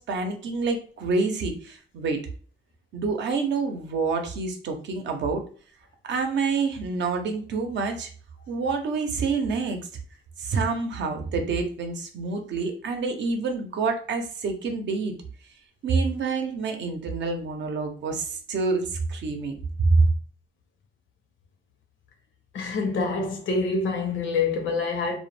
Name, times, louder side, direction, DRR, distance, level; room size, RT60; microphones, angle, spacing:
voice 1, 0.0-2.2 2.9-5.4 6.0-8.1 8.5-9.8 10.4-15.1 15.8-20.1, right 4 dB, 65° right, 0.6 m, -27 dB
voice 2, 22.5-25.2, left 4 dB, 75° left, 0.7 m, -26 dB
2.2 x 2.1 x 3.1 m
cardioid pair, 90°, 20 cm